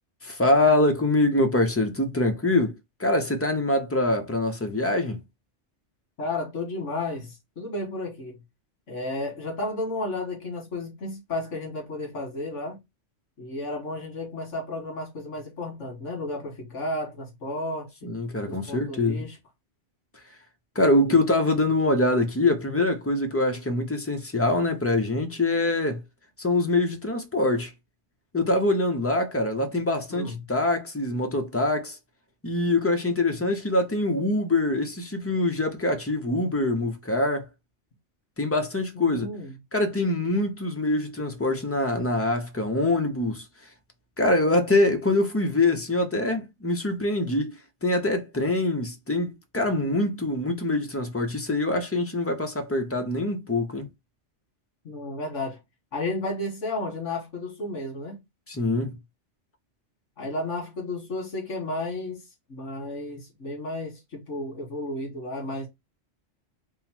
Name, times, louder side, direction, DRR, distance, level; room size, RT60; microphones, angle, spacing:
voice 1, 0.2-2.7 3.0-5.2 18.0-19.2 20.7-26.0 26.4-27.7 28.3-32.0 32.4-37.5 38.4-39.3 39.7-43.5 44.2-53.9 58.5-58.9, left 2 dB, 25° left, 0.3 m, -24 dB
voice 2, 6.2-8.4 8.9-12.8 13.4-17.9 18.5-19.4 30.1-30.4 39.0-39.5 54.9-55.6 55.9-58.2 60.2-62.2 62.5-65.7, left 2 dB, 85° left, 1.8 m, -32 dB
3.7 x 2.0 x 4.2 m
omnidirectional pair, 1.2 m